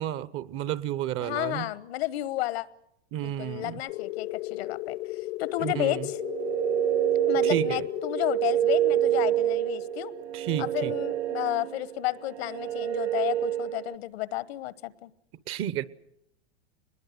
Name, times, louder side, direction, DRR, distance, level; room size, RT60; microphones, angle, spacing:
voice 1, 0.0-1.7 3.1-3.8 5.6-6.1 7.4-7.8 10.3-11.0 15.5-15.8, right 11 dB, 40° right, 0.9 m, -31 dB
voice 2, 1.2-2.7 3.2-5.0 5.4-6.2 7.3-10.1 10.6-15.1, left 16 dB, 70° left, 1.2 m, -32 dB
sound 1, 3.9-12.2, left 17 dB, 55° left, 0.9 m, -37 dB
sound 2, 6.1-14.0, right 12 dB, 85° right, 0.9 m, -27 dB
22.5 x 20.5 x 8.0 m
hypercardioid pair, 120°, 32 cm